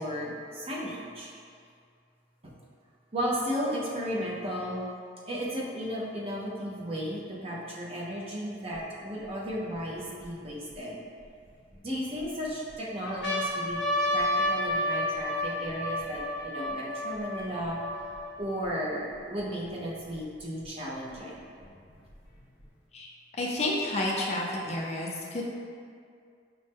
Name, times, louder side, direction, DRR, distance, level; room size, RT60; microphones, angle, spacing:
voice 1, 0.0-1.3 2.4-2.5 3.1-4.8 5.3-11.0 11.8-13.8 14.1-17.8 18.4-21.4, equal, 35° right, -5 dB, 0.6 m, -34 dB
sound 1, 8.7-8.8 9.5-10.8 11.5-12.2 12.7-12.8 13.0-18.7 19.4-19.5 19.6-20.7 21.6-22.6, left 1 dB, 70° left, 0.8 m, -31 dB
voice 2, 23.4-25.4, left 1 dB, 35° left, -3 dB, 0.5 m, -30 dB
5.2 x 2.1 x 3.4 m, 2.2 s
head